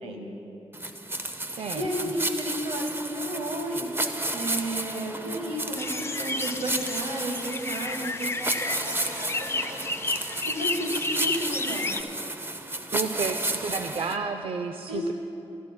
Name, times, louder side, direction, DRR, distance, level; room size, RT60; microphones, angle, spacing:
voice 1, 0.0-0.3 1.7-3.9 4.3-9.8 10.4-12.0 14.9-15.1, right 1 dB, 85° right, 1 dB, 1.6 m, -33 dB
sound 1, 0.7-14.2, right 1 dB, 20° right, 0.7 m, -32 dB
voice 2, 1.6-2.1 12.9-15.1, right 4 dB, 60° right, 6 dB, 0.5 m, -31 dB
sound 2, 5.8-12.0, left 3 dB, 25° left, 0.5 m, -32 dB
19.0 x 12.0 x 2.2 m, 2.9 s
cardioid pair, 55°, 11 cm